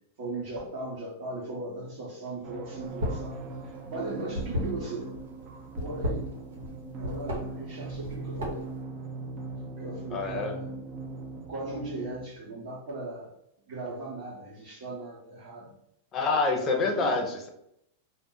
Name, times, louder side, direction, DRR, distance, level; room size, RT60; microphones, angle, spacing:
voice 1, 0.2-3.4 3.9-5.1 5.8-6.3 6.9-8.7 9.8-10.8 11.5-13.3 13.7-15.7 16.6-17.1, right 2 dB, 60° right, -8 dB, 1.0 m, -37 dB
sound 1, 2.4-12.3, right 3 dB, 35° right, 0.5 m, -40 dB
sound 2, 2.9-3.3 3.6-5.2 5.7-6.7 7.0-7.4 7.9-8.8, left 1 dB, 90° right, 1.0 m, -32 dB
voice 2, 10.1-10.6 16.1-17.5, left 3 dB, 30° left, 3 dB, 0.6 m, -27 dB
2.5 x 2.1 x 3.8 m, 0.77 s
hypercardioid pair, 130°, 0 cm